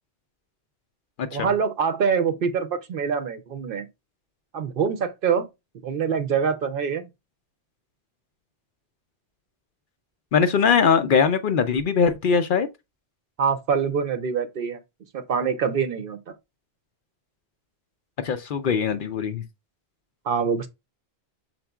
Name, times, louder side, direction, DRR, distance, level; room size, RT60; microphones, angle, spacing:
voice 1, 1.3-3.9 4.5-5.5 5.8-7.1 13.4-14.8 15.1-16.2 20.3-20.7, right 6 dB, 60° right, 0.7 m, -25 dB
voice 2, 10.3-12.7 18.2-19.4, left 6 dB, 60° left, 0.7 m, -21 dB
5.9 x 3.9 x 2.3 m
omnidirectional pair, 1.1 m